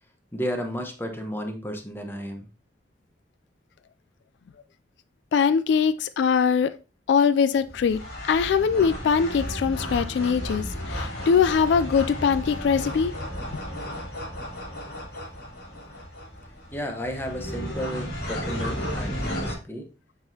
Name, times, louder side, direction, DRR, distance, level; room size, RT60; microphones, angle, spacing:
voice 1, 0.3-2.5 16.7-19.9, equal, 15° left, 1.0 m, -33 dB
voice 2, 5.3-6.7 7.1-8.0 8.3-13.1, left 6 dB, 80° left, 0.3 m, -22 dB
sound 1, 7.6-19.5, equal, 60° left, 3.1 m, -33 dB
7.8 x 6.1 x 2.8 m
head